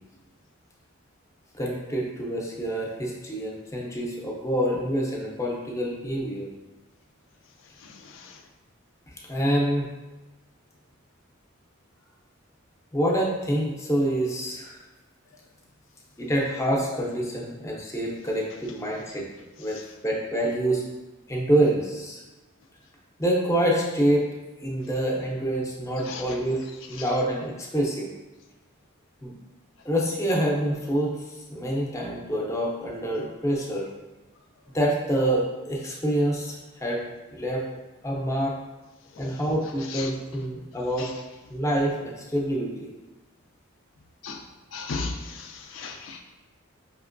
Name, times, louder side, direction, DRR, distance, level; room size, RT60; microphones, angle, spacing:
voice 1, 1.6-6.5 9.3-9.9 12.9-14.8 16.2-19.3 19.6-20.8 21.3-22.2 23.2-24.3 24.6-26.6 26.9-28.1 29.2-29.3 29.8-31.1 31.5-33.9 34.7-37.0 37.3-37.6 38.0-38.5 39.2-41.1 41.5-42.9, right 1 dB, 15° left, -2 dB, 0.5 m, -26 dB
voice 2, 7.8-8.4 26.0-26.3 39.2-39.3 39.9-40.1 41.0-41.1 44.2-44.4 44.7-46.2, left 4 dB, 65° left, 4 dB, 0.3 m, -36 dB
5.0 x 3.0 x 2.5 m, 1.1 s
head